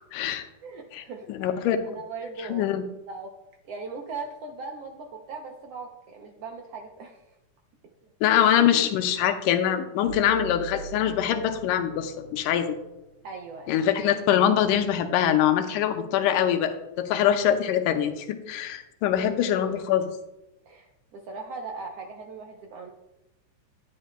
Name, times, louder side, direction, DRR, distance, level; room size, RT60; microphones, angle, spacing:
voice 1, 0.1-0.4 0.9-1.0 1.3-1.9 2.5-2.8 8.2-12.7 13.7-20.1, left 10 dB, 90° left, 7 dB, 2.2 m, -23 dB
voice 2, 0.6-1.7 1.9-2.7 3.1-3.3 3.6-7.2 13.2-13.8 20.7-22.9, right 4 dB, 75° right, 1 dB, 1.4 m, -39 dB
sound 1, 10.0-14.0, right 6 dB, 45° right, 1.8 m, -43 dB
10.0 x 9.5 x 2.2 m, 0.94 s
omnidirectional pair, 3.6 m